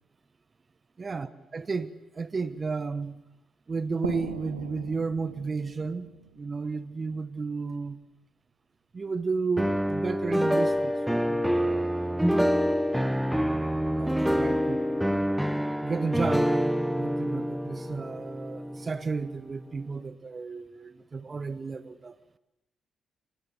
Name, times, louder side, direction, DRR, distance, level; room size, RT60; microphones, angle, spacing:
voice 1, 1.0-3.2 3.7-6.1 6.3-8.0 8.9-12.2 14.0-15.1 15.8-16.6 16.9-22.2, right 4 dB, 35° right, 1.1 m, -33 dB
sound 1, 4.0-7.5, right 7 dB, 80° right, 1.1 m, -41 dB
sound 2, 9.6-19.5, equal, 5° right, 1.2 m, -26 dB
26.0 x 20.5 x 8.0 m
figure-of-eight pair, 40°, 0 cm